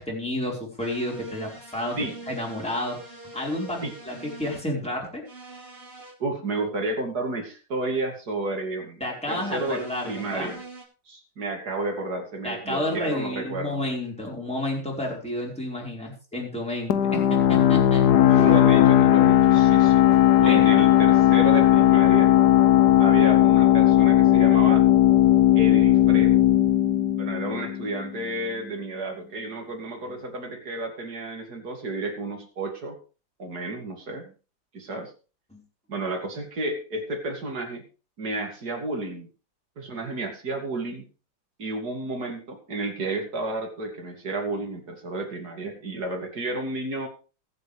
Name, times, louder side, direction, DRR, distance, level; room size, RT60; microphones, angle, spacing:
voice 1, 0.0-2.0 2.3-3.0 3.3-5.2 9.0-10.5 12.4-18.5 20.4-20.8 35.5-35.6, left 1 dB, 5° left, -3 dB, 4.5 m, -31 dB
sound 1, 0.8-4.6 5.3-6.1 9.3-10.8, right 3 dB, 30° right, 4.3 m, -44 dB
voice 2, 6.2-10.6 11.1-13.8 18.3-20.0 20.4-22.3 23.0-24.8 25.5-26.4 27.2-33.0 33.4-34.3 34.7-35.1 35.9-37.8 38.2-39.3 39.8-41.1 41.6-47.1, right 2 dB, 50° right, 3 dB, 3.1 m, -31 dB
sound 2, 16.9-28.3, left 12 dB, 60° left, 1.3 m, -17 dB
22.0 x 7.7 x 3.4 m, 0.34 s
omnidirectional pair, 2.1 m